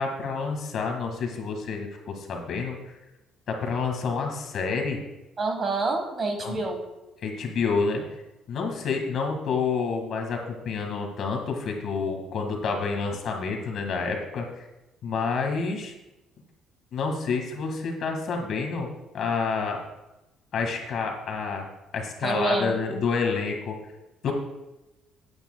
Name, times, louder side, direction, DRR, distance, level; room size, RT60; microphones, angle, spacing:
voice 1, 0.0-2.8 3.5-5.0 6.4-6.6 7.2-8.0 8.5-14.6 15.0-15.9 16.9-18.9 19.1-19.8 20.5-21.7 21.9-23.7 24.2-24.3, left 5 dB, 50° left, 3 dB, 1.8 m, -28 dB
voice 2, 5.4-6.8 22.2-23.0, right 3 dB, 30° right, 4 dB, 1.3 m, -28 dB
16.5 x 8.8 x 2.3 m, 0.99 s
cardioid pair, 165°, 0 cm